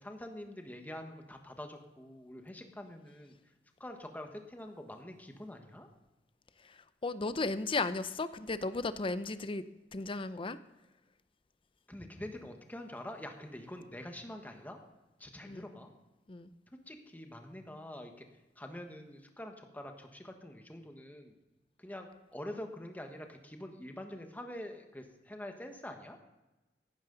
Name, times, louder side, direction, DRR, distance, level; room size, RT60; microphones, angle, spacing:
voice 1, 0.0-3.4 3.8-5.9 11.9-14.8 15.2-15.9 16.9-18.2 18.6-21.3 21.8-26.2, left 1 dB, 10° left, 4 dB, 1.3 m, -45 dB
voice 2, 6.6-9.6 9.9-10.6 15.5-15.7 16.3-16.5, left 3 dB, 30° left, 13 dB, 0.6 m, -35 dB
15.0 x 11.5 x 3.9 m, 1.1 s
head